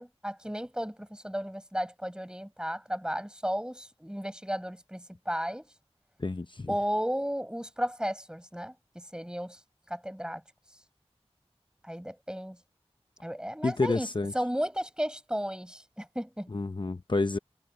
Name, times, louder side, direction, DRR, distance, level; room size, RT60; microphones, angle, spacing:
voice 1, 0.0-5.7 6.7-9.6 9.9-10.4 11.8-12.6 13.2-14.1 14.3-16.5, equal, 5° right, 7.8 m, -34 dB
voice 2, 6.2-6.7 13.6-14.3 16.5-17.4, left 3 dB, 45° left, 0.7 m, -29 dB
wide cardioid pair, 45°, 11 cm